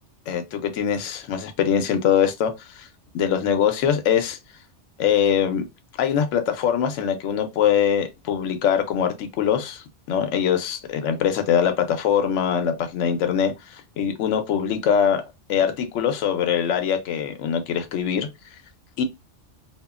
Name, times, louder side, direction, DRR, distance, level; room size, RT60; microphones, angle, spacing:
voice 1, 0.3-2.9 3.1-4.4 5.0-5.6 6.0-15.2 15.5-18.3 19.0-19.1, left 8 dB, 85° left, 0.9 m, -23 dB
2.8 x 2.4 x 2.3 m
omnidirectional pair, 1.2 m